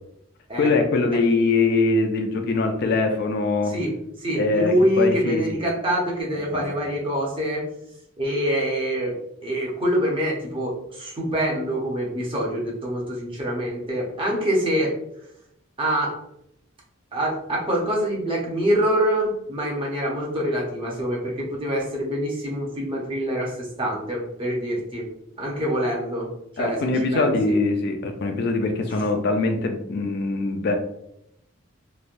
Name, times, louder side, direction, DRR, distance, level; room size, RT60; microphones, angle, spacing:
voice 1, 0.6-3.7 4.4-5.6 6.5-6.6 26.6-30.8, left 3 dB, 55° left, 5 dB, 0.4 m, -22 dB
voice 2, 3.7-7.6 8.2-9.2 9.4-14.9 15.8-16.2 17.1-25.1 25.4-26.3 26.6-26.8 27.1-27.6 28.9-29.0, equal, 25° right, -3 dB, 0.7 m, -25 dB
3.1 x 2.1 x 2.5 m, 0.78 s
head